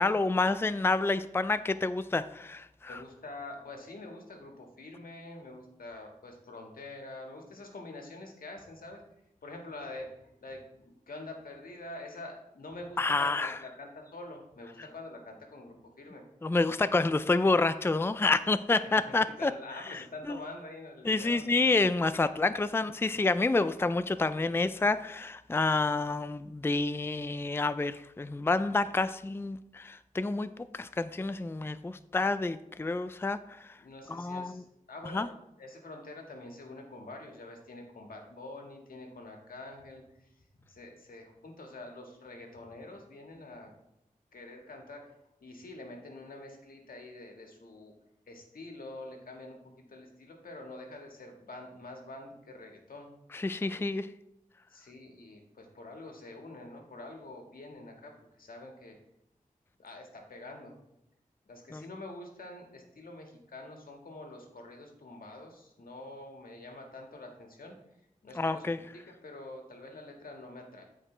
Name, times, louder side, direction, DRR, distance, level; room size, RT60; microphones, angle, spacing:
voice 1, 0.0-3.0 13.0-13.6 16.4-19.5 20.3-20.4 21.0-33.4 34.1-34.5 35.1-35.3 53.3-54.1 61.7-61.8 68.4-68.8, left 3 dB, 15° left, 13 dB, 0.4 m, -28 dB
voice 2, 2.9-9.0 9.4-10.1 10.4-16.2 18.8-21.5 33.8-35.3 35.6-40.3 40.7-43.7 44.3-45.1 45.4-47.9 48.3-53.1 53.7-53.8 54.7-58.1 58.4-59.0 59.8-60.8 61.4-67.7 68.2-70.8, left 2 dB, 90° left, 2 dB, 1.7 m, -46 dB
13.0 x 4.9 x 3.3 m, 0.86 s
cardioid pair, 45°, 14 cm